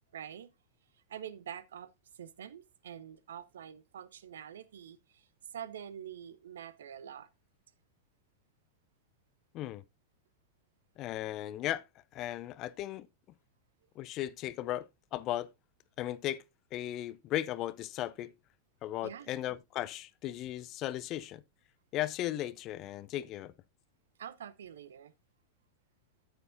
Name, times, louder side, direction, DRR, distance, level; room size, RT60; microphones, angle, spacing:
voice 1, 0.1-0.5 0.9-7.3 19.0-19.3 24.2-25.1, right 9 dB, 65° right, 0.8 m, -46 dB
voice 2, 11.0-11.8 12.1-13.1 14.0-15.5 16.0-16.4 16.7-18.3 18.8-21.4 21.9-23.5, left 13 dB, 35° left, 0.5 m, -36 dB
9.9 x 8.9 x 2.6 m
figure-of-eight pair, 90°, 0 cm